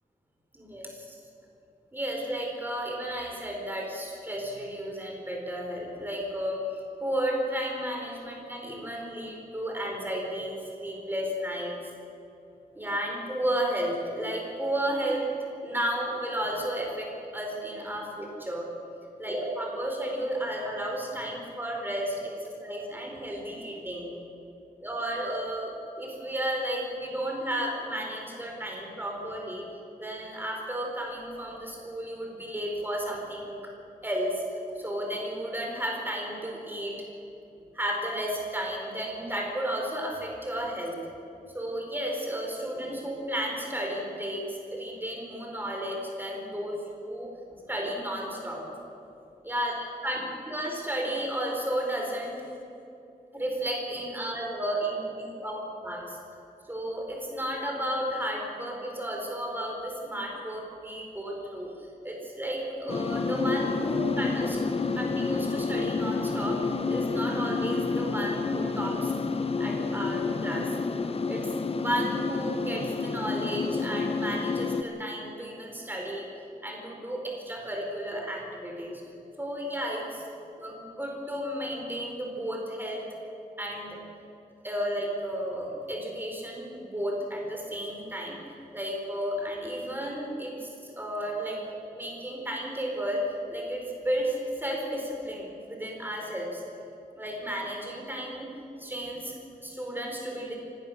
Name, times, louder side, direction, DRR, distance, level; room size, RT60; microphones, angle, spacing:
voice 1, 0.5-1.2 1.9-11.7 12.7-15.3 15.6-18.7 19.2-24.1 24.8-29.7 30.0-33.7 34.0-37.0 37.7-40.9 41.5-48.6 49.4-49.7 50.0-50.2 50.4-52.4 53.3-55.6 55.8-56.2 56.6-61.7 62.0-64.6 64.9-69.1 69.6-70.8 71.3-76.3 76.6-79.0 79.4-80.2 80.6-83.0 83.6-84.0 84.6-88.4 88.7-91.6 91.9-93.2 93.5-96.6 97.1-98.5 98.8-100.6, equal, 15° right, 0 dB, 4.8 m, -33 dB
sound 1, 62.9-74.8, left 4 dB, 40° left, 0.9 m, -29 dB
24.5 x 19.0 x 6.7 m, 2.7 s
wide cardioid pair, 150°, 16 cm